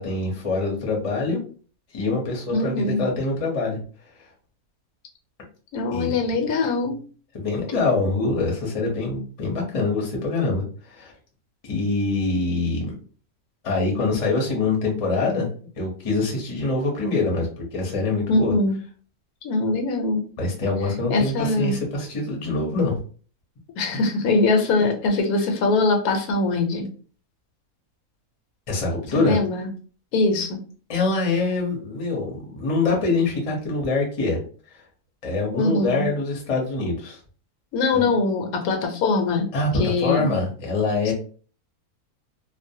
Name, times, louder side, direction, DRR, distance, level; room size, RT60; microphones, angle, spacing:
voice 1, 0.0-1.4 1.9-3.8 4.1-4.3 5.9-6.2 7.3-11.1 11.6-13.0 13.6-15.5 15.8-18.5 20.4-22.9 28.7-29.3 30.9-34.4 34.7-34.8 35.2-37.2 37.9-38.1 39.5-41.1, left 3 dB, 35° left, -1 dB, 0.6 m, -24 dB
voice 2, 2.5-3.0 5.7-7.0 18.3-18.8 19.4-20.2 21.1-21.7 23.8-26.9 29.1-29.7 30.1-30.6 35.5-36.1 37.7-39.5 39.8-40.3 41.1-41.2, left 3 dB, 80° left, 4 dB, 1.1 m, -22 dB
2.5 x 2.0 x 2.6 m, 0.41 s
omnidirectional pair, 1.5 m